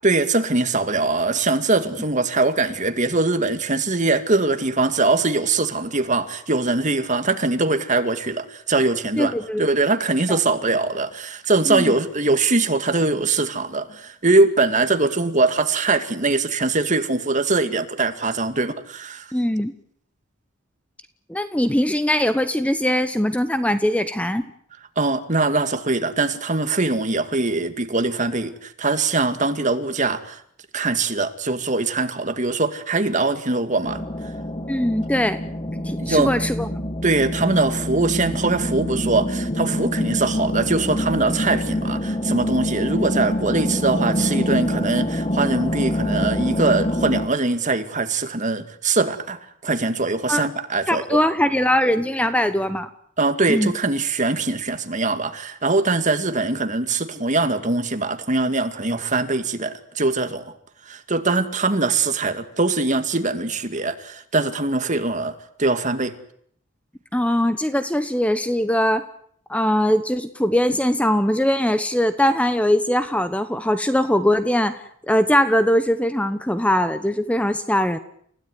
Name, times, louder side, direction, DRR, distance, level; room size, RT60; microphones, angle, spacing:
voice 1, 0.0-9.3 9.6-19.3 25.0-30.4 30.7-34.0 36.0-36.3 37.0-51.2 53.2-60.5 60.9-66.1, right 3 dB, 40° right, 8 dB, 2.2 m, -22 dB
voice 2, 9.2-9.6 10.3-10.4 11.7-11.9 19.3-19.7 21.3-24.4 34.7-35.4 35.8-36.7 50.3-50.5 50.9-52.9 53.5-53.7 67.1-69.0 69.5-74.8 75.1-78.0, equal, 5° left, 11 dB, 1.0 m, -21 dB
sound 1, 33.8-47.3, left 1 dB, 30° left, 1.8 m, -25 dB
29.5 x 16.5 x 9.6 m, 0.66 s
head